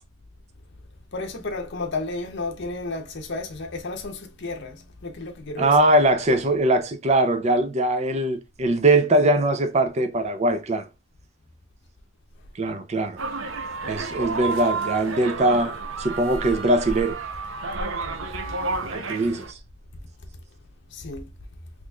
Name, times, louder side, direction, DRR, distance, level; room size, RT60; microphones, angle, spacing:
voice 1, 1.1-5.8 20.9-21.3, left 2 dB, 55° left, 0.7 m, -32 dB
voice 2, 5.6-10.9 12.6-13.2 13.9-17.2 18.9-19.6, right 1 dB, 30° right, 0.5 m, -21 dB
sound 1, 13.2-19.5, right 3 dB, 70° right, 0.7 m, -31 dB
4.0 x 3.0 x 2.3 m
head